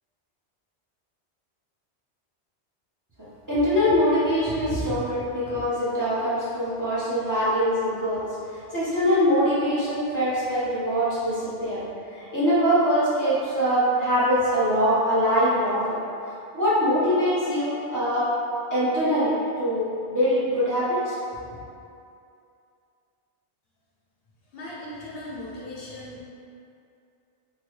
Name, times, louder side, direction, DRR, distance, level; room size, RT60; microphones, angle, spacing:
voice 1, 3.5-8.3 8.5-11.8 12.1-16.0 16.5-18.3 18.7-21.2, equal, 20° right, -11 dB, 0.7 m, -23 dB
voice 2, 24.5-26.2, left 1 dB, 65° left, -7 dB, 0.8 m, -38 dB
3.7 x 2.1 x 3.1 m, 2.5 s
omnidirectional pair, 1.1 m